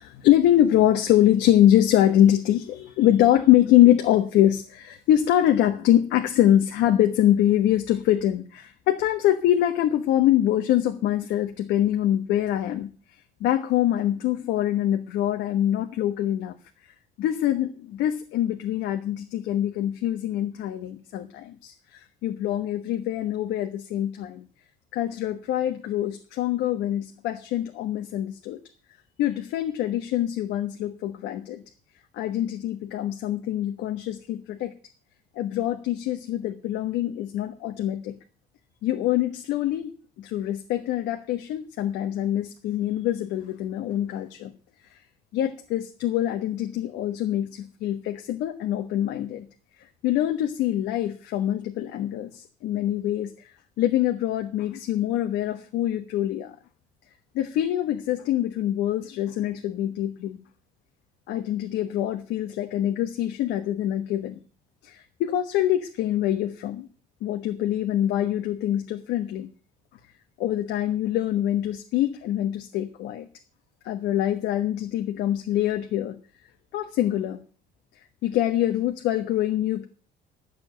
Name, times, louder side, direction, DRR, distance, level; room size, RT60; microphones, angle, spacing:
voice 1, 0.0-12.9 13.4-16.5 17.2-24.4 24.9-28.6 29.2-31.6 32.1-34.7 35.3-38.2 38.8-44.5 44.9-45.0 45.3-49.5 50.0-56.6 57.3-60.4 61.3-64.4 64.8-66.9 67.2-69.5 70.4-73.3 73.8-76.2 76.7-77.4 78.2-79.9, left 12 dB, 80° left, 6 dB, 1.2 m, -24 dB
11.0 x 7.1 x 9.0 m, 0.39 s
cardioid pair, 170°, 18 cm